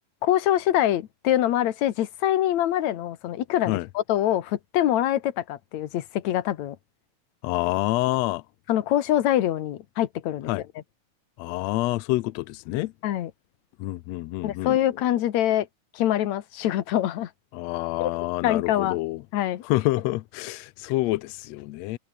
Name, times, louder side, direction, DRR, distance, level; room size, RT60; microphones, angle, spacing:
voice 1, 0.2-6.8 8.7-10.5 13.0-13.3 14.4-15.7 15.9-17.3 18.0-18.1 18.4-19.0 19.3-19.6, left 12 dB, 65° left, 2.4 m, -24 dB
voice 2, 7.4-8.4 10.5-10.6 11.4-12.9 13.8-14.8 17.5-19.2 19.6-22.0, left 19 dB, 90° left, 1.5 m, -27 dB
omnidirectional pair, 3.8 m